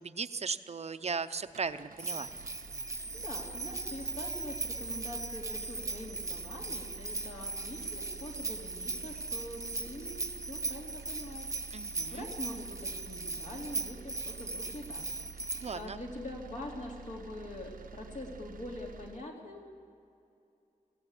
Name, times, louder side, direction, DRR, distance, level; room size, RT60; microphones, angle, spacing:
voice 1, 0.0-2.3 11.7-12.3 15.6-16.0, right 5 dB, 50° right, 11 dB, 0.6 m, -37 dB
sound 1, 1.4-19.3, right 5 dB, 90° right, 0.8 m, -49 dB
Bell, 2.0-15.8, right 3 dB, 20° right, 0.8 m, -39 dB
voice 2, 3.1-11.5 12.1-15.1 15.3-19.6, left 1 dB, 60° left, -1 dB, 3.5 m, -44 dB
23.0 x 16.0 x 8.3 m, 2.6 s
wide cardioid pair, 130°, 14 cm